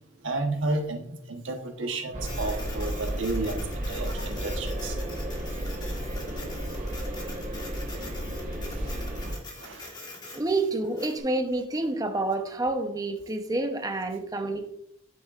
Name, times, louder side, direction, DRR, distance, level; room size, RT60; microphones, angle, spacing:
voice 1, 0.2-5.0 5.5-5.6 8.7-8.9 9.6-9.9, right 2 dB, 80° right, 1.1 m, -32 dB
sound 1, 2.1-9.3, equal, 40° right, 1.1 m, -33 dB
Printer, 2.2-11.2, left 2 dB, 20° left, 1.3 m, -44 dB
voice 2, 10.3-14.7, right 2 dB, 20° right, 0.7 m, -29 dB
8.4 x 6.6 x 2.4 m
head